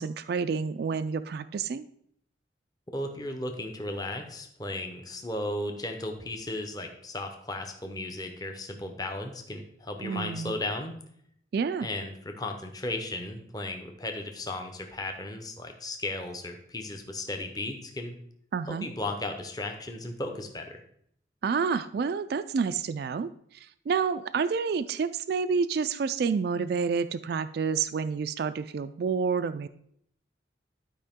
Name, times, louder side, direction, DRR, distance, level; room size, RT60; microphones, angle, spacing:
voice 1, 0.0-1.9 10.0-10.6 11.5-11.9 18.5-18.9 21.4-29.7, right 5 dB, 55° right, 12 dB, 0.3 m, -29 dB
voice 2, 2.9-10.9 11.8-18.2 18.7-20.8, left 2 dB, 20° left, 4 dB, 0.8 m, -35 dB
11.5 x 4.9 x 3.6 m, 0.68 s
head